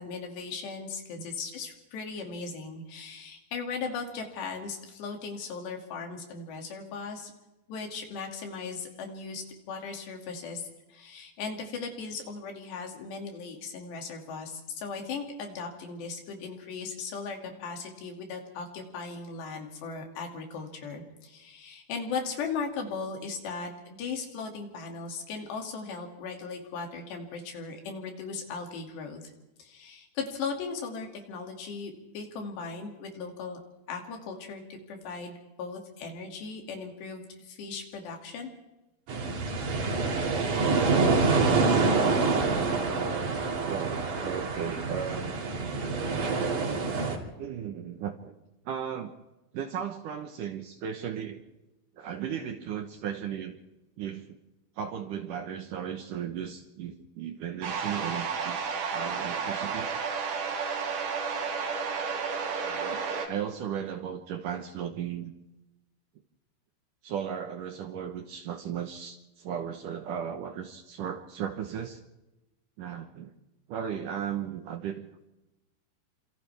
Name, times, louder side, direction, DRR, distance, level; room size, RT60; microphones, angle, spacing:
voice 1, 0.0-7.3 7.7-29.3 29.6-33.6 33.9-38.5, left 5 dB, 80° left, 2 dB, 4.7 m, -38 dB
sound 1, 39.1-47.2, right 4 dB, 50° right, 3.8 m, -26 dB
voice 2, 42.7-43.4 43.7-45.4 47.2-48.3 48.7-49.2 49.5-51.4 52.0-53.6 54.0-54.4 54.8-58.6 58.9-59.9 62.6-65.3 67.0-72.0 72.8-73.3 73.7-75.0, right 8 dB, 65° right, 5 dB, 2.2 m, -36 dB
sound 2, 57.6-63.3, right 5 dB, 80° right, 4.9 m, -32 dB
28.0 x 26.5 x 3.5 m, 1.0 s
omnidirectional pair, 4.8 m